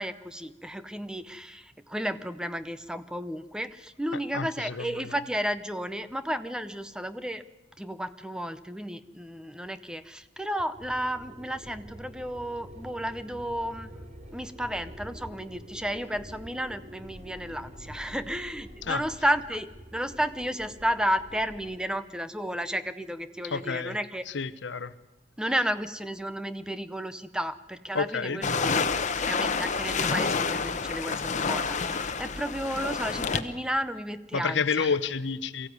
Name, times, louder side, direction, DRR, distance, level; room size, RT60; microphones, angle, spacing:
voice 1, 0.0-7.4 7.8-14.0 14.3-24.2 25.4-28.9 29.2-34.9, equal, 5° right, 12 dB, 0.6 m, -32 dB
voice 2, 4.3-5.1 18.9-19.0 23.5-24.0 24.3-24.9 27.9-28.4 34.3-35.7, left 5 dB, 65° left, 14 dB, 0.9 m, -29 dB
sound 1, 10.7-21.8, equal, 40° right, 2.8 m, -46 dB
sound 2, 28.4-33.4, left 5 dB, 40° left, 1.0 m, -28 dB
23.0 x 15.0 x 9.6 m, 1.1 s
head